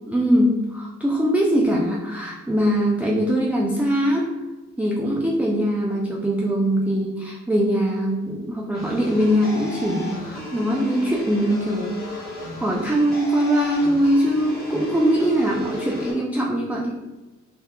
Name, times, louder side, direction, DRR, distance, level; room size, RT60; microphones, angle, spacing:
voice 1, 0.1-4.3 4.8-17.0, equal, 5° right, -3 dB, 0.4 m, -22 dB
sound 1, 8.7-16.1, left 1 dB, 30° left, 1.3 m, -35 dB
3.7 x 2.8 x 2.3 m, 1.1 s
cardioid pair, 90°, 30 cm